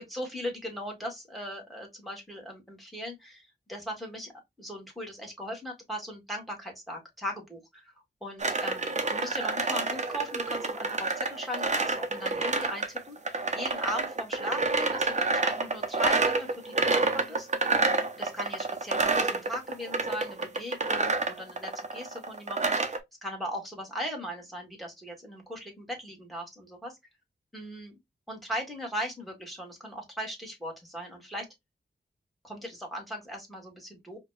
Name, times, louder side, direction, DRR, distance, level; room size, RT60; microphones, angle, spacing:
voice 1, 0.0-4.3 4.6-7.9 8.2-17.5 18.2-27.0 27.5-27.9 28.3-31.5 32.4-34.2, equal, ahead, 1.5 m, -38 dB
sound 1, 8.4-23.0, right 3 dB, 40° right, 0.6 m, -28 dB
4.9 x 2.2 x 2.2 m
wide cardioid pair, 80°, 19 cm